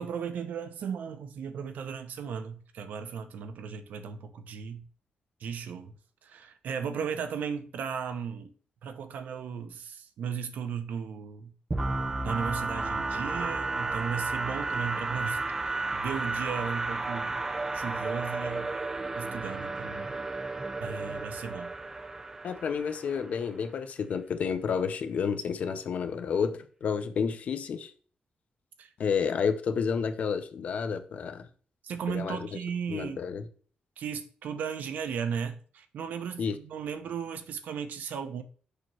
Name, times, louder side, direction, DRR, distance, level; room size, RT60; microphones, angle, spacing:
voice 1, 0.0-4.9 5.4-5.9 6.2-8.5 8.8-11.5 12.2-17.4 17.7-18.7 19.2-20.2 20.4-21.7 28.8-28.9 31.8-33.2 34.0-38.4, right 7 dB, 75° right, 0.8 m, -36 dB
sound 1, 11.7-23.5, right 3 dB, 15° right, 0.4 m, -33 dB
voice 2, 22.4-27.9 29.0-31.5 32.1-32.4 32.9-33.5 36.4-36.6, left 6 dB, 55° left, 0.7 m, -30 dB
6.6 x 6.2 x 3.0 m
wide cardioid pair, 160°, 3 cm